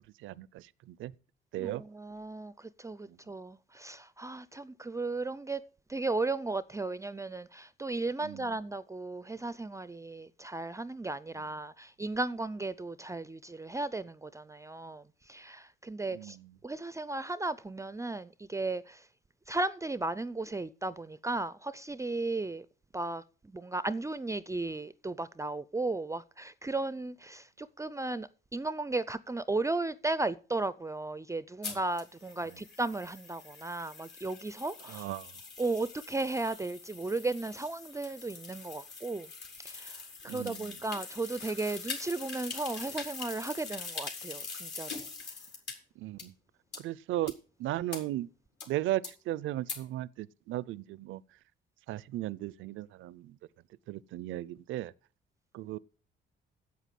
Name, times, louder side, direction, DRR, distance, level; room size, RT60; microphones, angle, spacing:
voice 1, 0.2-1.1 1.5-1.8 3.1-3.2 8.2-8.5 16.1-16.5 34.9-35.3 40.3-40.7 46.0-46.3 46.8-47.3 47.6-48.3 48.7-51.2 51.9-53.3 53.9-54.9 55.5-55.8, right 15 dB, 80° right, 0.5 m, -36 dB
voice 2, 1.6-5.6 5.9-16.4 16.6-19.1 19.5-22.7 22.9-35.1 35.6-39.3 39.6-45.0, right 2 dB, 15° right, 0.4 m, -35 dB
sound 1, 31.6-45.7 46.2-46.3 46.7-46.8 47.3-47.4 47.9-48.0 48.6-48.7 49.0-49.1 49.7-49.8, left 4 dB, 60° left, 3.7 m, -43 dB
8.3 x 8.1 x 7.5 m
cardioid pair, 90°, 20 cm